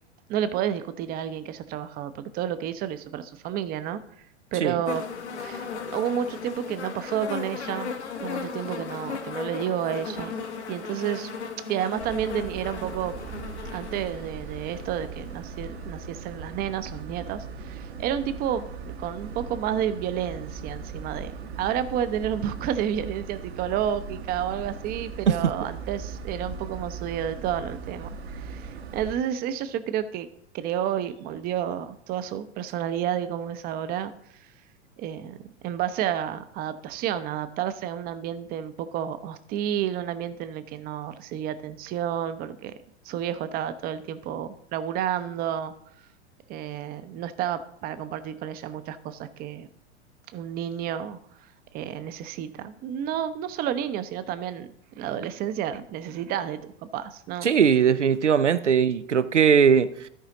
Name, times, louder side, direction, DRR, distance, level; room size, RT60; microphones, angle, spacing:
voice 1, 0.3-4.0 4.5-5.0 5.4-7.9 8.2-10.4 10.7-11.3 11.7-13.1 13.7-30.3 30.5-34.1 35.0-42.8 43.0-45.7 46.5-49.7 50.3-51.5 51.7-54.7 55.0-57.5, right 10 dB, 25° right, 0.6 m, -30 dB
sound 1, 4.9-15.9 16.9-17.0, left 6 dB, 70° left, 1.2 m, -36 dB
sound 2, 12.0-29.1, right 4 dB, 65° right, 1.1 m, -39 dB
voice 2, 57.4-60.1, right 7 dB, 85° right, 0.5 m, -20 dB
13.0 x 5.0 x 3.9 m
figure-of-eight pair, 90°, 35 cm